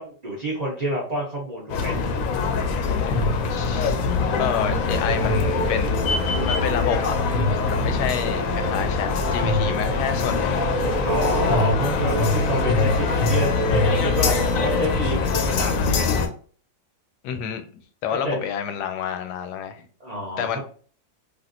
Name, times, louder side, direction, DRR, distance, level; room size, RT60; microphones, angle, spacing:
voice 1, 0.0-2.0 11.0-14.4 14.6-16.2 18.2-18.4 20.0-20.6, equal, 50° right, 0.4 m, -28 dB
sound 1, 1.7-16.3, left 4 dB, 70° left, 0.8 m, -23 dB
voice 2, 3.5-4.0 4.4-6.1 6.5-7.1 7.7-10.7 17.2-17.6 18.0-19.9 20.4-20.6, left 8 dB, 85° left, 1.1 m, -29 dB
sound 2, 4.9-14.9, right 3 dB, 70° right, 0.9 m, -31 dB
3.5 x 2.5 x 2.5 m
omnidirectional pair, 1.7 m